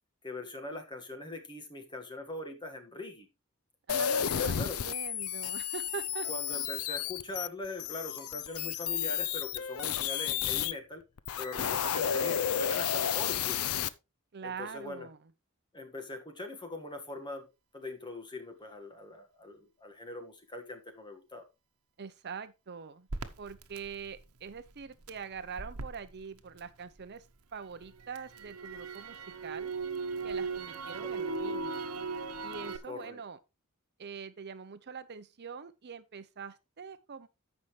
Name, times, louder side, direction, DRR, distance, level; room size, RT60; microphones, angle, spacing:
voice 1, 0.2-3.3 4.4-4.8 6.3-11.0 11.4-13.7 14.4-15.1 15.7-17.4 17.7-21.4 31.0-31.3 32.9-33.2, left 2 dB, 20° left, 1.6 m, -42 dB
sound 1, 3.9-10.7 11.2-13.9, left 9 dB, 80° left, 0.6 m, -32 dB
voice 2, 3.9-6.3 14.3-15.2 22.0-23.1 23.4-27.2 27.5-29.7 30.2-31.8 32.4-33.4 34.0-37.3, right 6 dB, 50° right, 0.6 m, -43 dB
Crackle, 23.1-27.2 27.6-32.8, right 4 dB, 85° right, 1.0 m, -38 dB
14.0 x 5.5 x 3.2 m
head